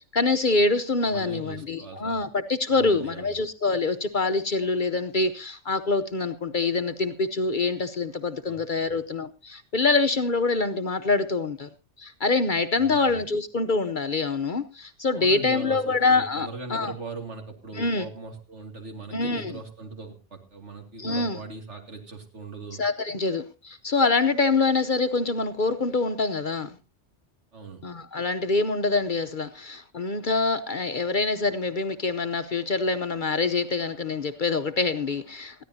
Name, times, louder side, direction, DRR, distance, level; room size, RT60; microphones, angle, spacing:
voice 1, 0.1-11.7 12.0-16.9 17.8-18.1 19.1-19.6 21.0-21.4 22.8-26.7 27.8-35.6, left 3 dB, 45° left, 9 dB, 0.9 m, -25 dB
voice 2, 1.0-2.2 2.7-3.4 8.5-8.9 12.7-13.2 15.1-22.8 27.5-27.8, right 3 dB, 70° right, 4 dB, 2.8 m, -40 dB
20.5 x 14.5 x 2.8 m, 0.30 s
omnidirectional pair, 1.3 m